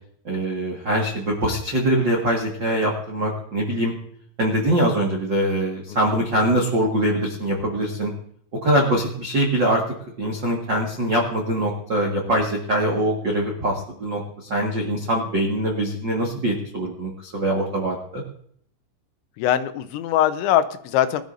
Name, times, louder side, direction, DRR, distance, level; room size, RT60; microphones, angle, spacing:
voice 1, 0.2-3.9 4.4-8.1 8.5-9.8 10.2-18.2, right 1 dB, 90° right, -1 dB, 1.0 m, -23 dB
voice 2, 19.4-21.2, left 11 dB, 85° left, 10 dB, 3.1 m, -22 dB
22.0 x 12.0 x 2.6 m, 0.64 s
omnidirectional pair, 5.2 m